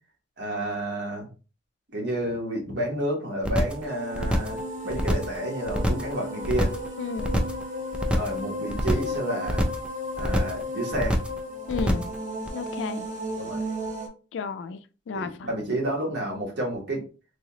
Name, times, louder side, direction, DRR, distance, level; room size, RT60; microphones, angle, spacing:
voice 1, 0.4-1.3 1.9-4.6 4.8-6.7 8.1-9.7 10.2-11.2 13.4-13.6 15.1-17.1, right 1 dB, 65° right, 1.2 m, -30 dB
sound 1, 3.4-3.8 4.1-4.6 4.9-5.4 5.7-6.1 6.4-6.9 7.2-7.6 7.9-8.4 8.7-9.2 9.5-9.9 10.2-10.6 10.9-11.4 11.7-12.2 12.5-12.6, equal, 5° right, 0.3 m, -26 dB
sound 2, 3.5-14.1, left 1 dB, 40° right, 0.7 m, -34 dB
voice 2, 7.0-7.4 11.7-12.1 12.5-13.1 14.3-15.5, left 5 dB, 75° left, 0.3 m, -33 dB
3.4 x 2.8 x 2.8 m
head